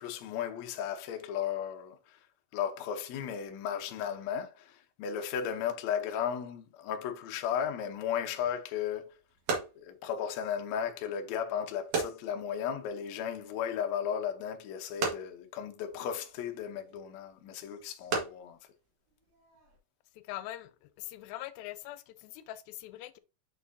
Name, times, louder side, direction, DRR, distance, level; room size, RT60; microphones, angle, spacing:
voice 1, 0.0-2.3 2.5-9.2 9.8-18.6, left 8 dB, 70° left, 1.8 m, -35 dB
sound 1, 8.4-19.8, right 4 dB, 55° right, 2.5 m, -40 dB
voice 2, 20.1-23.2, left 15 dB, 90° left, 2.3 m, -43 dB
6.6 x 5.8 x 2.7 m
omnidirectional pair, 4.1 m